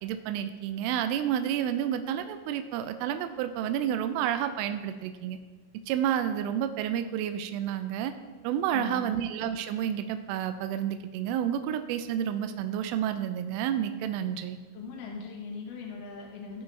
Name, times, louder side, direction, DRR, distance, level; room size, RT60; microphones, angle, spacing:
voice 1, 0.0-5.4 5.9-8.1 8.4-14.6, right 10 dB, 85° right, 9 dB, 3.2 m, -30 dB
voice 2, 8.7-9.2 14.7-16.6, left 4 dB, 85° left, 0 dB, 1.9 m, -39 dB
16.5 x 5.7 x 3.2 m, 1.4 s
omnidirectional pair, 5.8 m